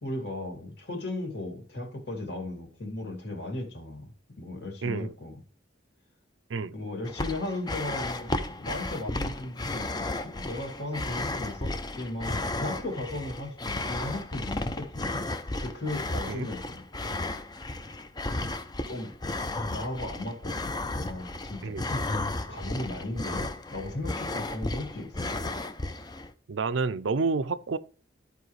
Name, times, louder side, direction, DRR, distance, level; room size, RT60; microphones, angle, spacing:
voice 1, 0.0-5.4 6.7-15.1 15.4-16.8 18.8-19.1 19.7-20.6 21.0-22.1 22.4-25.3, left 1 dB, 65° left, 2.4 m, -36 dB
voice 2, 4.8-5.1 6.5-6.7 16.3-16.5 21.6-21.8 26.5-27.8, right 4 dB, 85° right, 0.5 m, -29 dB
sound 1, 7.0-26.3, left 2 dB, 20° left, 0.5 m, -34 dB
14.0 x 4.8 x 3.2 m
head